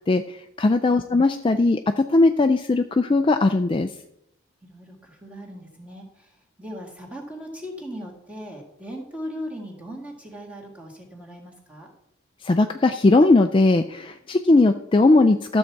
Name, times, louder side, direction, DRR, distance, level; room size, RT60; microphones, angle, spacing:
voice 1, 0.1-3.9 12.4-15.6, left 2 dB, 25° left, 7 dB, 0.3 m, -19 dB
voice 2, 4.6-11.9, equal, 5° right, -1 dB, 1.9 m, -38 dB
13.0 x 7.3 x 4.6 m, 0.80 s
head